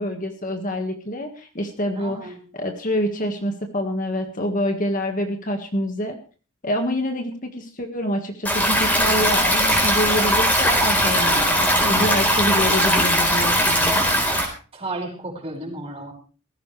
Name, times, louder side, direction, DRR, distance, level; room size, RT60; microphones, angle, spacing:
voice 1, 0.0-6.2 6.6-14.0, equal, 35° left, 4 dB, 1.8 m, -26 dB
voice 2, 2.0-2.4 14.7-16.1, right 2 dB, 25° right, -1 dB, 5.8 m, -33 dB
Stream, 8.4-14.4, equal, 5° left, 4.1 m, -19 dB
18.0 x 15.5 x 3.3 m, 0.37 s
head